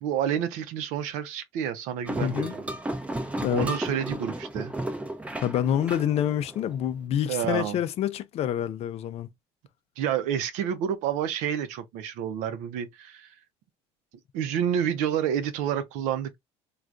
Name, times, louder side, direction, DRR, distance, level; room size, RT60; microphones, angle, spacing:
voice 1, 0.0-2.6 3.5-4.7 7.3-7.8 10.0-13.3 14.3-16.4, right 9 dB, 75° right, 0.6 m, -29 dB
sound 1, 2.1-6.9, right 1 dB, 10° right, 0.5 m, -34 dB
voice 2, 2.2-2.5 3.4-3.8 5.4-9.3, left 10 dB, 55° left, 0.5 m, -27 dB
3.3 x 2.4 x 2.5 m
supercardioid pair, 95°, 13 cm